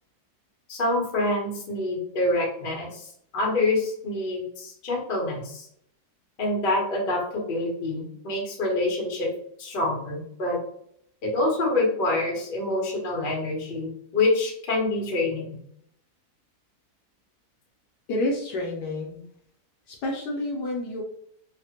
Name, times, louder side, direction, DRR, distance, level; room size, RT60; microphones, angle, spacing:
voice 1, 0.7-3.1 3.3-5.7 6.4-9.3 9.6-10.6 11.2-15.5, left 2 dB, 50° left, -2 dB, 0.7 m, -26 dB
voice 2, 18.1-19.2 19.9-21.0, left 1 dB, 70° left, -1 dB, 1.1 m, -29 dB
3.2 x 2.1 x 2.8 m, 0.69 s
omnidirectional pair, 2.1 m